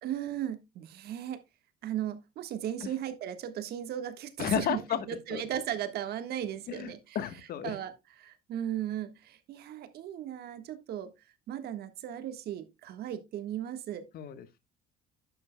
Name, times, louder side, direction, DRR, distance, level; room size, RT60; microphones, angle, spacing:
voice 1, 0.0-1.4 1.8-4.8 5.1-7.2 7.6-7.9 8.2-11.1 11.5-14.1, right 10 dB, 70° right, 1.5 m, -36 dB
voice 2, 4.4-5.4 6.7-7.7 14.1-14.6, left 9 dB, 65° left, 1.2 m, -33 dB
11.0 x 8.2 x 2.2 m
cardioid pair, 110°, 17 cm